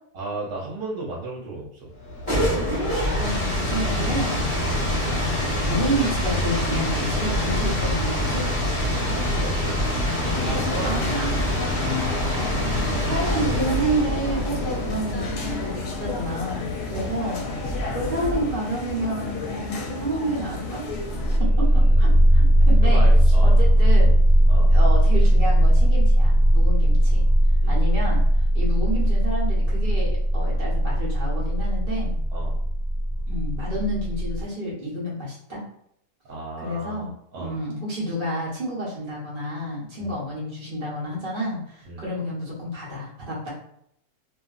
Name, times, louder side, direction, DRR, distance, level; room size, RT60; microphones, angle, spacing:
voice 1, 0.1-1.9 8.8-11.1 14.6-14.8 16.8-17.2 21.4-22.1 22.8-23.6 24.5-24.7 25.2-25.3 27.6-27.9 32.3-32.6 36.2-37.6 40.0-40.2 41.8-42.1, right 2 dB, 75° right, -4 dB, 1.2 m, -35 dB
sound 1, 2.0-18.7, left 1 dB, 20° left, 1.0 m, -26 dB
voice 2, 2.6-4.4 5.0-8.5 10.8-11.5 12.3-20.8 21.6-23.1 23.4-24.1 24.7-27.2 27.7-28.2 28.5-32.2 33.3-35.6 36.6-37.1 37.4-43.5, right 1 dB, 40° right, -6 dB, 0.8 m, -30 dB
sound 2, 10.2-21.4, left 3 dB, 75° left, 1.1 m, -32 dB
sound 3, 21.0-34.4, equal, 45° left, 0.5 m, -18 dB
2.7 x 2.4 x 2.3 m, 0.71 s
omnidirectional pair, 1.7 m